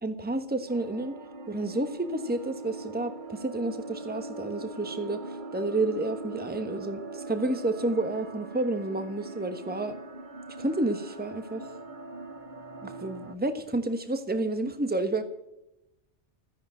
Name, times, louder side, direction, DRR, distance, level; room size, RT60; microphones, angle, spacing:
voice 1, 0.0-1.1 1.5-9.9 10.6-11.7 12.8-15.2, right 2 dB, 10° right, 8 dB, 1.2 m, -30 dB
sound 1, 0.7-13.4, right 2 dB, 45° right, 1.2 m, -41 dB
13.5 x 10.5 x 7.6 m, 0.87 s
omnidirectional pair, 1.2 m